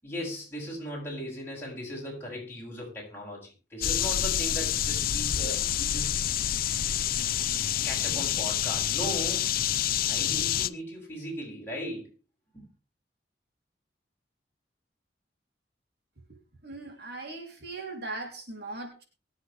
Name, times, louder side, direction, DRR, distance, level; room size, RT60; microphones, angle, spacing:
voice 1, 0.0-6.2 7.8-9.5 10.1-12.1 12.5-12.6, equal, 15° left, -3 dB, 7.8 m, -38 dB
sound 1, 3.8-10.7, left 10 dB, 55° left, 0.6 m, -28 dB
voice 2, 16.6-19.0, right 2 dB, 65° right, 2 dB, 3.7 m, -39 dB
23.5 x 7.9 x 3.6 m, 0.33 s
head